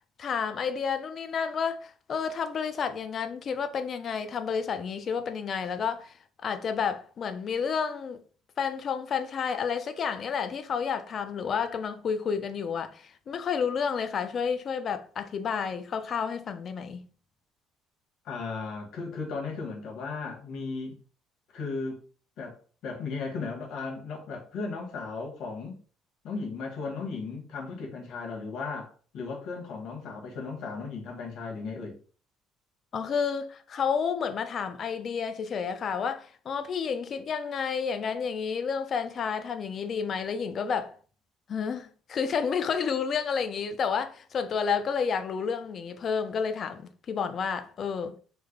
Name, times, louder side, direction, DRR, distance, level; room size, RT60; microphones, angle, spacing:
voice 1, 0.2-6.2 6.4-8.2 8.6-17.0 32.9-40.9 41.5-48.2, left 6 dB, 35° left, 0.4 m, -30 dB
voice 2, 18.2-21.0 21.5-22.0 22.4-22.6 22.8-25.8 26.2-32.0, left 4 dB, 60° left, 1.1 m, -36 dB
3.2 x 2.1 x 3.6 m
cardioid pair, 160°, 0 cm